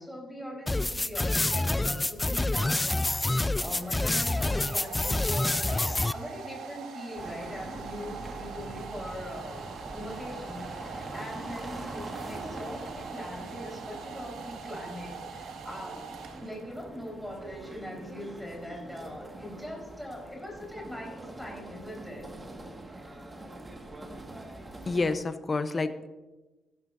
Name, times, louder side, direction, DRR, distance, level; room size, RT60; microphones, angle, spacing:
voice 1, 0.0-9.6 9.9-16.0 16.4-22.3 22.9-23.2 25.7-25.8, equal, ahead, -1 dB, 4.2 m, -41 dB
sound 1, 0.7-6.1, left 2 dB, 15° left, 0.4 m, -27 dB
Domestic sounds home sounds, 3.1-16.9, right 6 dB, 80° right, 1.5 m, -43 dB
sound 2, 7.2-25.2, right 2 dB, 20° right, 1.7 m, -43 dB
voice 2, 24.9-26.1, left 3 dB, 30° left, 10 dB, 0.8 m, -29 dB
15.0 x 12.5 x 2.6 m, 1.1 s
cardioid pair, 90°, 0 cm